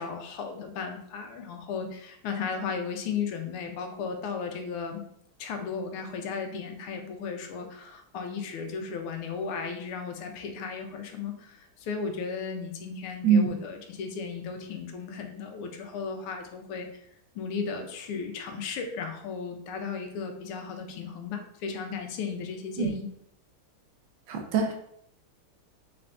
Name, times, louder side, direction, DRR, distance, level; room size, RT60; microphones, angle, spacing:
voice 1, 0.0-5.0 5.4-16.9 17.3-23.1, left 5 dB, 85° left, 5 dB, 1.6 m, -35 dB
voice 2, 24.3-24.7, right 6 dB, 75° right, 3 dB, 1.4 m, -23 dB
4.3 x 2.5 x 3.3 m, 0.70 s
omnidirectional pair, 2.4 m